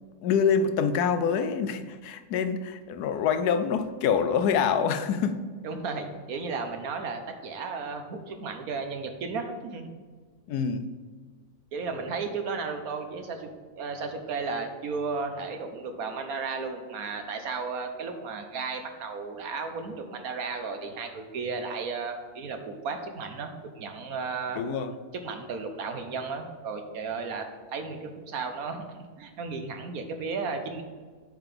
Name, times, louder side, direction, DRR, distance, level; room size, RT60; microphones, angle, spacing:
voice 1, 0.2-5.4 10.5-10.9 24.5-24.9, left 6 dB, 90° left, 10 dB, 1.2 m, -26 dB
voice 2, 5.6-9.9 11.7-13.5 13.8-24.6 25.2-27.5 27.7-30.8, right 4 dB, 70° right, 6 dB, 1.3 m, -34 dB
8.0 x 3.9 x 6.7 m, 1.5 s
omnidirectional pair, 1.6 m